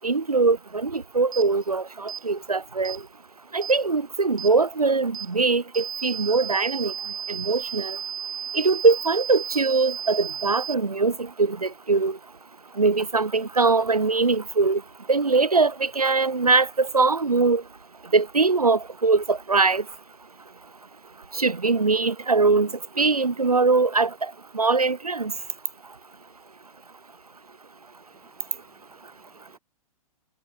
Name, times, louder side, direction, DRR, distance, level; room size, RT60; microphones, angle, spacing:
voice 1, 0.0-3.0 3.5-6.9 7.3-8.0 8.5-12.2 12.8-14.8 15.1-17.6 18.1-19.8 21.3-25.3, right 4 dB, 90° right, 1.3 m, -22 dB
sound 1, 1.3-1.5 2.1-2.2 2.8-3.0 3.6-3.8 4.4-4.5 5.1-5.3 5.7-10.7, right 8 dB, 65° right, 2.1 m, -34 dB
voice 2, 28.0-29.6, right 6 dB, 15° right, 6.4 m, -65 dB
figure-of-eight pair, 115°, 19 cm